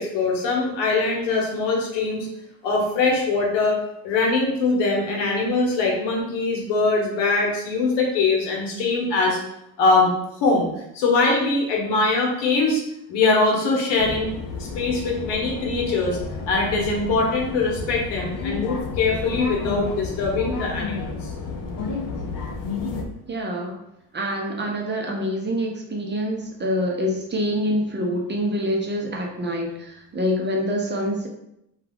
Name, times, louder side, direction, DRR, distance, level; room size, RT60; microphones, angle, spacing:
voice 1, 0.0-2.3 2.6-3.8 4.0-9.4 9.8-10.1 10.4-10.7 10.9-12.8 13.1-14.3 14.7-16.2 16.5-21.3, left 3 dB, 80° left, -1 dB, 0.9 m, -22 dB
sound 1, 14.0-23.0, left 4 dB, 50° left, 0.6 m, -31 dB
voice 2, 23.3-23.8 24.1-31.3, equal, 25° right, 0 dB, 0.7 m, -26 dB
2.3 x 2.3 x 3.4 m, 0.81 s
supercardioid pair, 75°, 42 cm